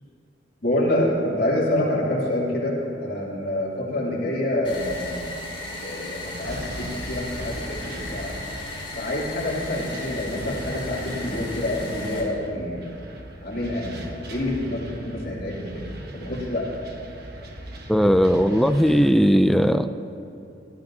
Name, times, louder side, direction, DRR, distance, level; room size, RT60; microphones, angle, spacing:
voice 1, 0.6-2.7 3.0-5.4 5.7-8.4 9.0-13.0 13.4-15.9 16.1-16.7, left 1 dB, 55° left, -5 dB, 3.0 m, -27 dB
sound 1, 4.6-12.2, left 2 dB, 30° left, 3.5 m, -36 dB
sound 2, 6.3-19.1, right 1 dB, 60° right, 1.2 m, -39 dB
voice 2, 17.9-19.9, equal, ahead, 9 dB, 0.4 m, -18 dB
18.0 x 13.0 x 2.8 m, 2.8 s
head